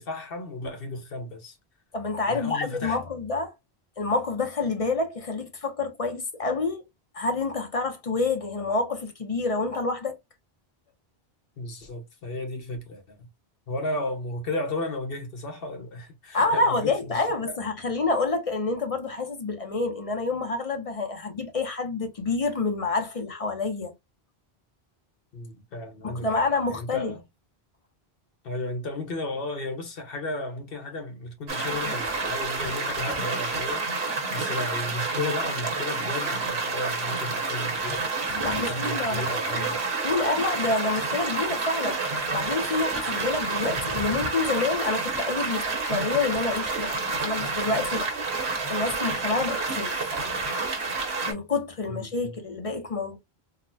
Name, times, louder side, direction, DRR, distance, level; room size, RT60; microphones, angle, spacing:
voice 1, 0.0-1.6 2.3-3.0 11.6-13.2 13.7-17.6 25.3-27.2 28.4-33.9 34.3-38.1 38.6-39.8 51.9-52.3, left 2 dB, 65° left, 1.1 m, -34 dB
voice 2, 1.9-3.5 4.0-6.8 7.1-10.2 16.3-23.9 26.0-27.1 38.3-39.8 40.0-42.0 42.3-48.1 48.7-49.9 51.3-53.2, left 3 dB, 40° left, 0.6 m, -28 dB
sound 1, 31.5-51.3, right 3 dB, 80° right, 1.2 m, -29 dB
3.9 x 2.1 x 2.6 m
omnidirectional pair, 1.1 m